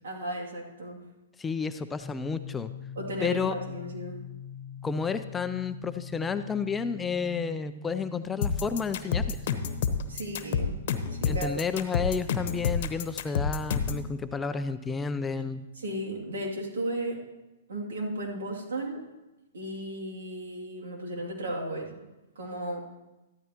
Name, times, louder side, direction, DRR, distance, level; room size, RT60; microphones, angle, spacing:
voice 1, 0.0-1.0 3.0-4.2 10.1-10.8 11.1-11.6 15.8-17.3 17.7-19.0 19.5-21.9 22.4-22.8, right 1 dB, 80° right, -1 dB, 2.6 m, -35 dB
voice 2, 1.4-2.7 3.2-3.5 4.8-9.4 11.2-15.7, left 5 dB, 15° left, 10 dB, 0.4 m, -31 dB
sound 1, 2.0-15.6, left 4 dB, 10° right, 2.1 m, -46 dB
sound 2, 8.4-14.1, left 6 dB, 55° left, 1.0 m, -28 dB
13.5 x 12.0 x 3.0 m, 1.0 s
hypercardioid pair, 125°, 0 cm